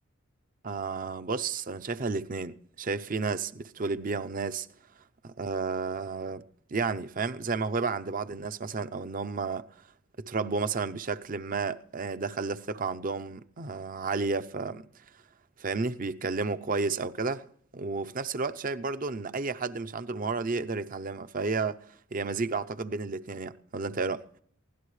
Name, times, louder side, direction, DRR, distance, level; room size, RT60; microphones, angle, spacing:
voice 1, 0.6-4.7 5.2-6.4 6.7-9.7 10.2-14.8 15.6-17.5 17.7-21.8 22.1-24.2, right 4 dB, 40° right, 0.7 m, -32 dB
23.5 x 16.5 x 3.2 m
head